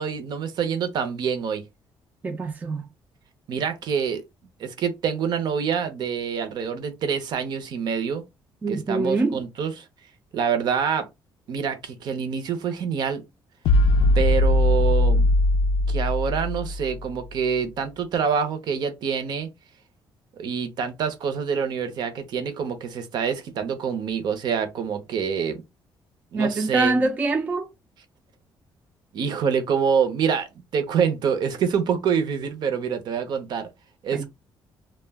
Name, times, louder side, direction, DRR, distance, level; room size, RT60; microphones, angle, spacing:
voice 1, 0.0-1.6 3.5-4.2 4.6-8.2 8.7-9.8 10.3-11.1 11.5-13.2 14.1-15.2 15.9-19.5 20.3-25.6 26.3-27.0 29.1-33.7 34.0-34.3, right 7 dB, 55° right, 0.6 m, -26 dB
voice 2, 2.2-2.8 8.6-9.4 26.3-27.7 34.1-34.3, right 3 dB, 20° right, 0.3 m, -24 dB
sound 1, 13.7-17.1, left 2 dB, 90° left, 0.4 m, -20 dB
2.2 x 2.1 x 3.3 m
cardioid pair, 170°, 8 cm